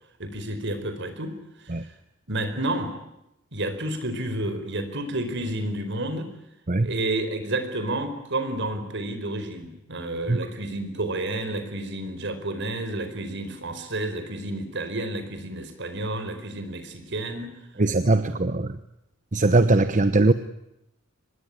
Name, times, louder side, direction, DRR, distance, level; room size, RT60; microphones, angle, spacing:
voice 1, 0.2-1.7 2.3-2.9 3.5-6.3 6.8-17.5, right 1 dB, 60° right, 9 dB, 4.7 m, -30 dB
voice 2, 17.8-18.8 19.3-20.3, right 2 dB, 40° right, 11 dB, 1.0 m, -20 dB
25.0 x 21.0 x 10.0 m, 0.85 s
head